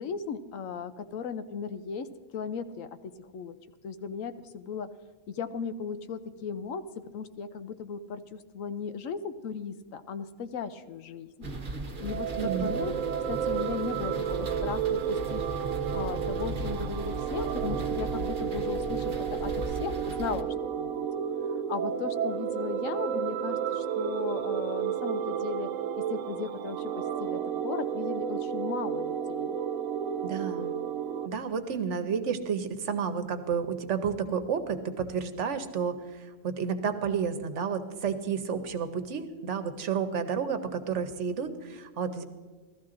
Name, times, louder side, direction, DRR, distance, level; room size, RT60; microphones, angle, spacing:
voice 1, 0.0-3.6 3.8-4.9 5.3-6.8 7.1-11.5 12.0-12.3 12.6-12.9 13.3-15.4 15.9-21.1 21.7-25.7 26.1-29.6, left 6 dB, 85° left, 11 dB, 1.1 m, -36 dB
sound 1, 11.4-20.4, right 2 dB, 45° right, 1.1 m, -38 dB
sound 2, 12.0-31.3, right 8 dB, 90° right, 1.0 m, -32 dB
voice 2, 12.4-13.0 30.2-30.7 31.2-42.2, right 6 dB, 65° right, 9 dB, 1.2 m, -31 dB
15.5 x 13.5 x 3.8 m, 1.4 s
omnidirectional pair, 1.3 m